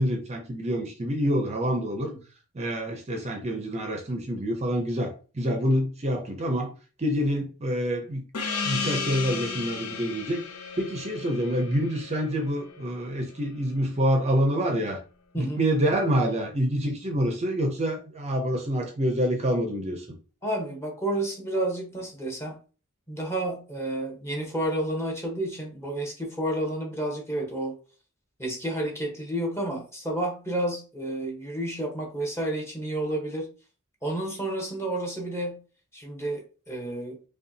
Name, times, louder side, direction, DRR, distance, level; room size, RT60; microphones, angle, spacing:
voice 1, 0.0-2.1 2.5-6.7 7.0-8.2 8.6-10.4 10.8-15.0 15.4-20.1, equal, 30° right, 3 dB, 0.6 m, -27 dB
Gong, 8.3-13.4, left 5 dB, 90° left, 0.7 m, -34 dB
voice 2, 15.3-15.7 20.4-22.6 23.1-27.7 28.4-33.5 34.0-35.6 35.9-37.2, right 1 dB, 10° left, 0 dB, 1.1 m, -30 dB
5.4 x 2.3 x 2.7 m, 0.35 s
head